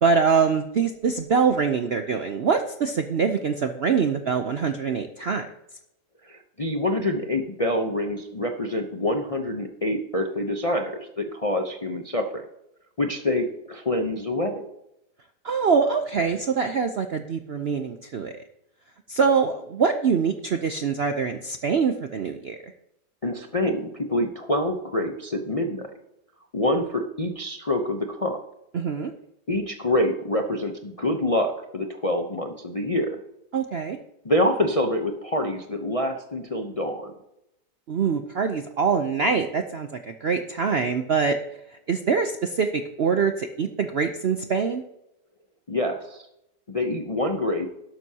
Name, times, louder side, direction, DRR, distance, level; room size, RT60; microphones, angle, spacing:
voice 1, 0.0-5.5 15.4-18.3 19.1-22.7 28.7-29.1 33.5-34.0 37.9-41.4 41.7-44.8, right 5 dB, 60° right, 7 dB, 0.6 m, -24 dB
voice 2, 6.2-12.4 13.0-14.6 23.2-25.9 26.5-28.4 29.5-33.2 34.2-37.1 45.7-46.2 46.7-47.7, left 1 dB, 35° left, 3 dB, 0.5 m, -26 dB
12.0 x 11.5 x 2.8 m, 0.83 s
omnidirectional pair, 1.8 m